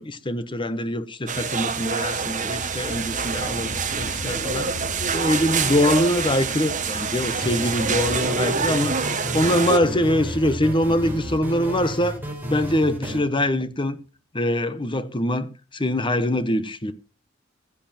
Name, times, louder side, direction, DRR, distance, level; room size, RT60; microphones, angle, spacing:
voice 1, 0.0-4.7 5.1-9.0 9.3-12.2 12.5-14.0 14.3-16.9, left 1 dB, 25° left, 1.2 m, -23 dB
sound 1, 1.3-9.8, right 5 dB, 40° right, 1.7 m, -26 dB
sound 2, 1.4-13.7, left 2 dB, 75° left, 2.0 m, -40 dB
sound 3, 7.4-13.2, equal, 10° right, 4.5 m, -33 dB
16.0 x 9.9 x 4.4 m
head